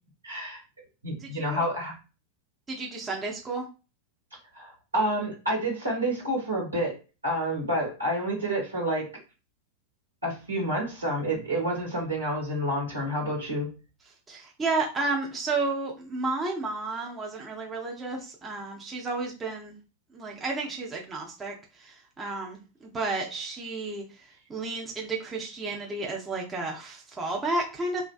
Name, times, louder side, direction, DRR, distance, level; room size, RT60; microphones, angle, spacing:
voice 1, 0.2-0.6 1.0-1.9 4.5-7.0 7.2-9.1 10.2-13.7, right 1 dB, 80° right, -3 dB, 1.4 m, -29 dB
voice 2, 1.2-1.6 2.7-3.7 14.3-19.8 20.1-28.1, right 3 dB, 15° right, -1 dB, 0.6 m, -32 dB
2.5 x 2.2 x 2.3 m, 0.33 s
figure-of-eight pair, 90°, 0 cm